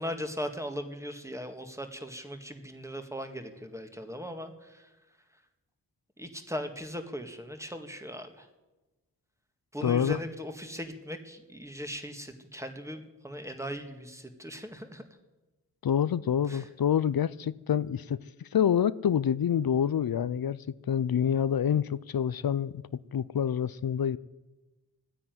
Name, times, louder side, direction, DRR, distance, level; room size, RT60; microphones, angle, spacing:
voice 1, 0.0-4.9 6.2-8.5 9.7-15.1 16.4-16.7, equal, 10° right, 1.9 m, -39 dB
voice 2, 9.8-10.2 15.8-22.8 23.1-24.2, left 8 dB, 80° left, 0.5 m, -27 dB
14.0 x 9.9 x 9.4 m
wide cardioid pair, 50°, 35 cm